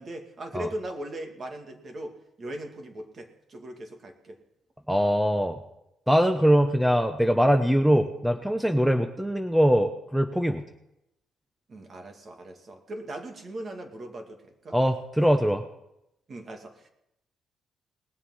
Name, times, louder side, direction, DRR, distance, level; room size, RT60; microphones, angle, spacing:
voice 1, 0.0-4.4 11.7-14.8 16.3-16.9, right 1 dB, 40° right, 4 dB, 2.2 m, -39 dB
voice 2, 4.9-5.6 6.1-10.6 14.7-15.6, equal, 5° right, 7 dB, 0.8 m, -22 dB
20.0 x 7.3 x 5.6 m, 0.84 s
cardioid pair, 90°, 0 cm